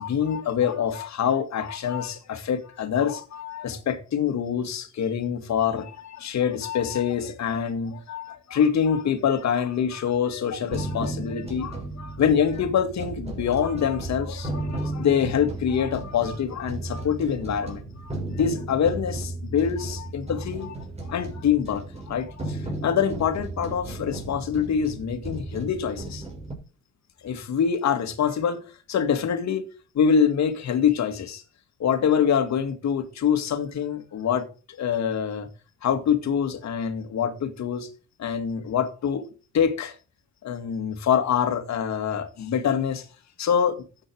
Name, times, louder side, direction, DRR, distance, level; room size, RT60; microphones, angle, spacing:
voice 1, 0.0-20.8 21.1-26.2 27.2-28.6 28.9-29.7 29.9-31.4 31.8-35.5 35.8-37.9 38.2-39.3 39.5-39.9 40.4-43.1 43.4-43.8, left 7 dB, 65° left, 2.2 m, -25 dB
sound 1, 10.7-26.5, right 2 dB, 20° right, 6.4 m, -34 dB
13.0 x 8.9 x 4.7 m
cardioid pair, 90°, 30 cm